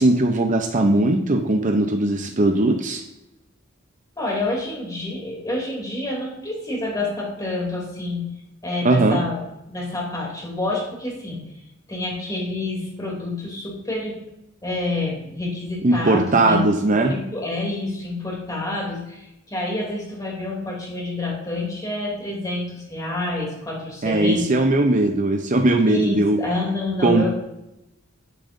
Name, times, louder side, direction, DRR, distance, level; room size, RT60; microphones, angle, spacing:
voice 1, 0.0-3.0 8.8-9.2 15.8-17.1 24.0-26.4 27.0-27.3, right 2 dB, 40° right, 4 dB, 0.7 m, -19 dB
voice 2, 4.2-8.3 8.6-9.4 9.7-11.6 11.9-14.2 14.6-24.4 25.9-27.3, left 2 dB, 20° left, -2 dB, 3.0 m, -28 dB
10.0 x 9.9 x 2.7 m, 0.91 s
head